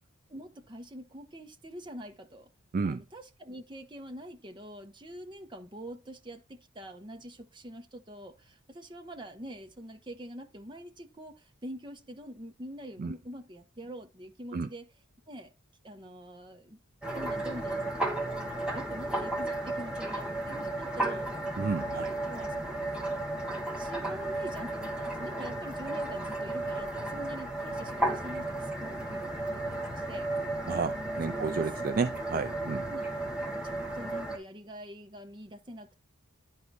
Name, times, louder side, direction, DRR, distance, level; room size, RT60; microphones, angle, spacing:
voice 1, 0.3-2.5 2.8-14.9 15.3-15.5 15.8-16.8 17.1-17.9 18.4-21.3 22.0-23.1 23.8-30.3 31.3-31.7 32.8-33.0 33.6-36.0, equal, 20° right, 1.1 m, -45 dB
sound 1, 17.0-34.4, right 1 dB, 5° right, 1.2 m, -34 dB
voice 2, 21.6-22.1 30.7-32.8, right 4 dB, 40° right, 0.4 m, -31 dB
10.5 x 4.7 x 4.1 m
head